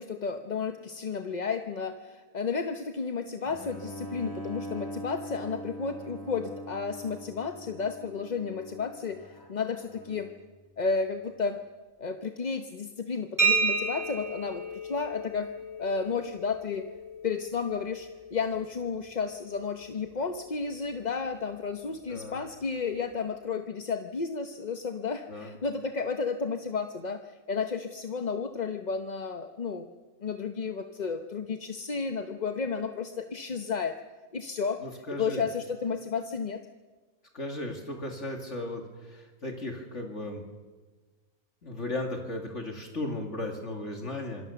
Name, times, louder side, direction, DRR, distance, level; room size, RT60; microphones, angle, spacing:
voice 1, 0.0-10.3 10.8-11.6 12.0-15.5 15.8-16.8 17.2-29.9 30.2-33.9 34.3-34.8 35.2-36.6, left 5 dB, 35° left, 7 dB, 0.9 m, -32 dB
Bowed string instrument, 3.4-10.5, equal, 15° left, 3.1 m, -42 dB
sound 1, 13.4-20.9, right 4 dB, 10° right, 6.0 m, -33 dB
voice 2, 22.1-22.4 25.3-25.5 34.8-35.4 37.3-40.4 41.6-44.5, left 1 dB, 55° left, 3 dB, 2.6 m, -36 dB
26.5 x 20.5 x 6.9 m, 1.3 s
omnidirectional pair, 1.5 m